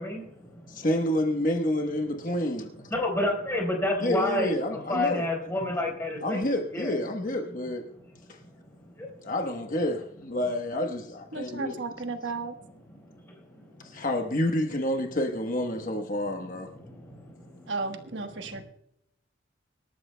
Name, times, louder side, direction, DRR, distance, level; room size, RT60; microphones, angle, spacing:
voice 1, 0.0-0.9 2.3-2.4 2.9-4.5 4.9-7.0 8.3-9.3 12.9-14.1 16.4-17.7 18.3-18.6, left 1 dB, 10° left, 4.2 m, -32 dB
voice 2, 0.7-2.8 4.0-5.2 6.2-7.9 8.3-8.4 9.2-11.8 13.8-16.7, left 1 dB, 45° left, 1.1 m, -29 dB
voice 3, 11.3-12.5 17.7-18.6, right 3 dB, 65° right, 1.2 m, -34 dB
25.5 x 13.0 x 2.2 m
head